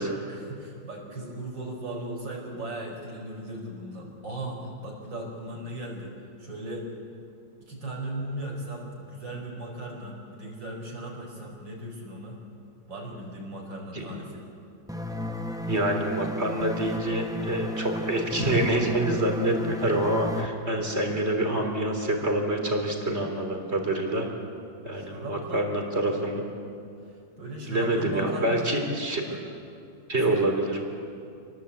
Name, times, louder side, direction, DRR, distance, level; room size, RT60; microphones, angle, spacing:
voice 1, 0.0-6.9 7.7-12.4 12.9-14.5 24.9-25.7 27.0-28.7 29.3-29.4 30.3-30.5, right 1 dB, 65° right, -1 dB, 5.7 m, -37 dB
sound 1, 14.9-20.5, equal, 5° right, 0.7 m, -33 dB
voice 2, 15.7-24.3 24.8-26.4 27.7-29.2 30.1-30.8, right 1 dB, 30° right, 3 dB, 3.6 m, -26 dB
27.5 x 20.0 x 8.4 m, 2.5 s
omnidirectional pair, 2.1 m